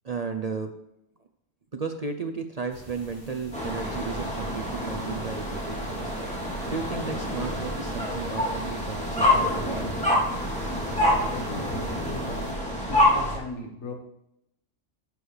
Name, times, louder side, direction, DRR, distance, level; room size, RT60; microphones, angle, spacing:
voice 1, 0.0-0.7 1.7-6.1 6.7-9.9, right 5 dB, 40° right, 5 dB, 0.6 m, -34 dB
sound 1, 2.7-12.5, equal, 45° left, 2.4 m, -47 dB
sound 2, 3.5-13.4, left 1 dB, 5° left, 3.0 m, -27 dB
voice 2, 11.1-12.5 12.8-14.0, left 2 dB, 85° left, 2 dB, 1.9 m, -38 dB
12.5 x 8.0 x 3.4 m, 0.82 s
omnidirectional pair, 1.3 m